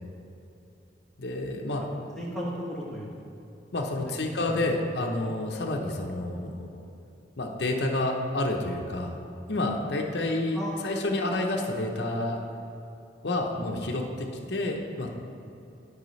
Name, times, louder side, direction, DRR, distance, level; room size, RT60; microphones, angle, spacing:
voice 1, 1.2-1.8 3.7-6.9 7.4-9.1 9.5-12.4 13.2-15.1, left 2 dB, 60° left, 1 dB, 0.7 m, -29 dB
voice 2, 2.2-3.2 4.4-4.5 10.5-10.9, equal, ahead, -7 dB, 1.3 m, -35 dB
12.0 x 4.8 x 3.1 m, 2.7 s
head